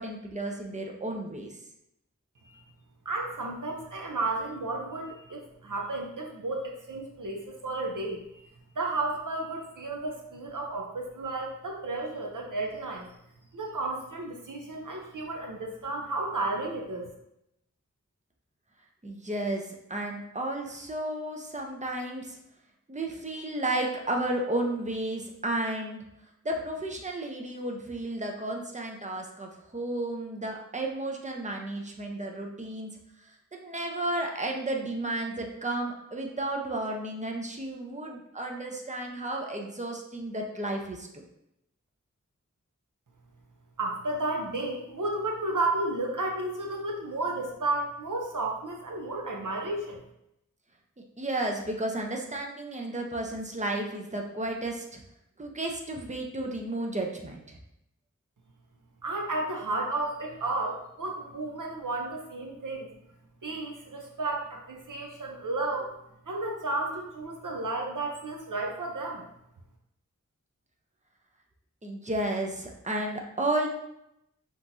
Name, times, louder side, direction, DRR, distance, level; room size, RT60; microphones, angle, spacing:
voice 1, 0.0-1.6 19.0-22.4 22.9-26.0 26.4-32.9 33.2-41.2 51.2-55.0 55.4-57.6 71.8-73.7, right 1 dB, 25° right, 1 dB, 0.7 m, -33 dB
voice 2, 3.1-8.2 8.8-13.1 13.5-17.1 43.8-50.0 59.0-62.9 63.4-65.9 66.3-69.3, right 2 dB, 85° right, 1 dB, 0.7 m, -32 dB
5.7 x 3.1 x 2.7 m, 0.82 s
wide cardioid pair, 45°, 31 cm